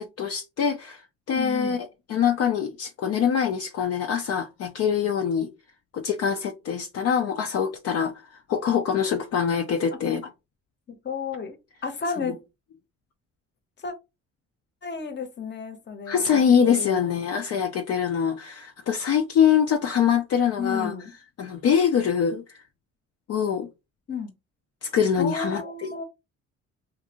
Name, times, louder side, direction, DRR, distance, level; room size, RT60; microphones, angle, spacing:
voice 1, 0.0-1.8 2.1-5.5 5.9-10.3 12.3-12.4 16.1-20.9 21.4-22.6 23.3-23.7 24.8-26.0, left 7 dB, 55° left, 0.5 m, -24 dB
voice 2, 1.3-1.8 10.9-11.6 11.8-12.4 13.8-13.9 14.8-16.4 16.7-17.3 20.6-21.1 24.1-24.3 25.2-26.0, left 5 dB, 35° left, 0.8 m, -32 dB
2.6 x 2.5 x 2.8 m
cardioid pair, 90°, 30 cm